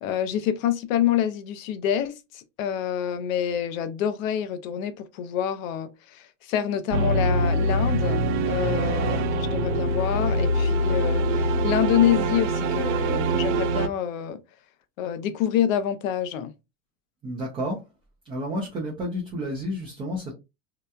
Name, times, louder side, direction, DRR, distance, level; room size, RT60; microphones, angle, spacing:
voice 1, 0.0-14.4 15.0-16.5, left 9 dB, 80° left, 0.6 m, -27 dB
sound 1, 6.9-13.9, right 1 dB, 70° right, 0.5 m, -24 dB
sound 2, 8.7-13.7, left 6 dB, 65° left, 1.2 m, -37 dB
voice 2, 17.2-17.8 18.2-20.3, equal, 15° right, 0.4 m, -30 dB
2.8 x 2.1 x 2.2 m
supercardioid pair, 150°, 40 cm